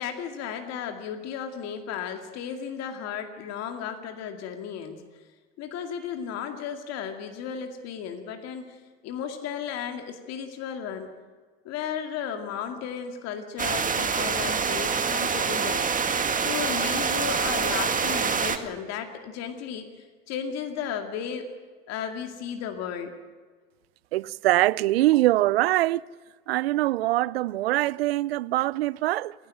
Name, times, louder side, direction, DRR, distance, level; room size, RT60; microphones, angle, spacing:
voice 1, 0.0-5.0 5.6-8.8 9.0-11.1 11.6-15.8 16.4-21.5 21.9-23.1, left 8 dB, 60° left, 2.3 m, -34 dB
sound 1, 13.6-18.6, right 5 dB, 25° right, 2.0 m, -26 dB
voice 2, 24.1-26.0 26.5-29.3, right 17 dB, 85° right, 0.5 m, -23 dB
28.5 x 11.0 x 9.0 m
hypercardioid pair, 75°, 30 cm